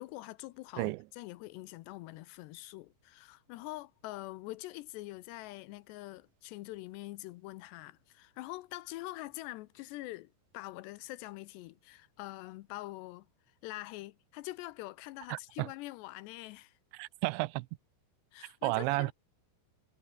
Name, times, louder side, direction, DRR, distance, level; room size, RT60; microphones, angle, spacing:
voice 1, 0.0-13.3 13.6-16.8 18.3-19.1, left 18 dB, 80° left, 2.8 m, -45 dB
voice 2, 15.3-15.7 16.9-17.7 18.6-19.1, right 23 dB, 90° right, 2.9 m, -32 dB
omnidirectional pair, 5.0 m